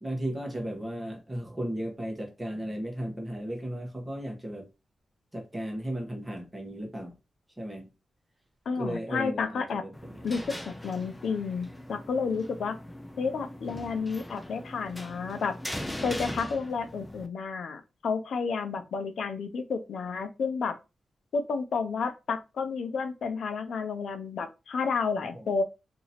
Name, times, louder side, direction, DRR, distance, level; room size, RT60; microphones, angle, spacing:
voice 1, 0.0-4.7 5.3-7.1 7.6-7.9 8.7-10.3 25.3-25.4, right 1 dB, 10° right, 1.1 m, -35 dB
voice 2, 8.7-9.8 10.2-12.8 13.2-15.6 16.0-20.7 21.3-25.6, left 5 dB, 70° left, 0.6 m, -31 dB
sound 1, 9.9-17.3, left 1 dB, 10° left, 0.6 m, -40 dB
2.9 x 2.7 x 4.1 m
cardioid pair, 105°, 0 cm